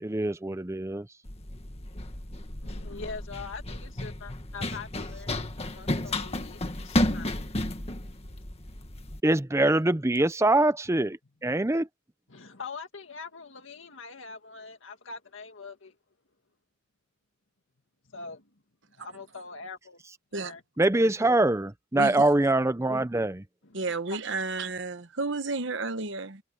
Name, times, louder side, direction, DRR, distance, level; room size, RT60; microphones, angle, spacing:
voice 1, 0.0-1.1 9.2-11.9 20.8-23.4, right 2 dB, 15° right, 0.6 m, -24 dB
Run, 1.3-9.2, left 1 dB, 30° left, 1.8 m, -32 dB
voice 2, 2.6-5.4 5.6-7.4 11.0-11.1 12.3-16.0 18.1-18.4 19.0-20.0 20.4-20.6 23.6-24.2, left 4 dB, 75° left, 2.1 m, -43 dB
voice 3, 21.9-22.3 23.7-26.4, right 3 dB, 65° right, 1.1 m, -32 dB
head